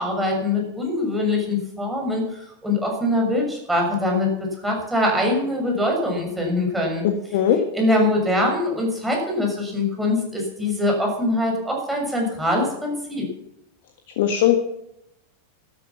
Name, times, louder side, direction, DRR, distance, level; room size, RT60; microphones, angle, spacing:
voice 1, 0.0-4.3 4.6-7.0 7.7-13.2, left 1 dB, 5° right, 0 dB, 6.6 m, -23 dB
voice 2, 7.0-7.6 14.2-14.6, left 10 dB, 50° left, 6 dB, 1.6 m, -19 dB
13.5 x 13.0 x 7.2 m, 0.83 s
figure-of-eight pair, 90°, 0 cm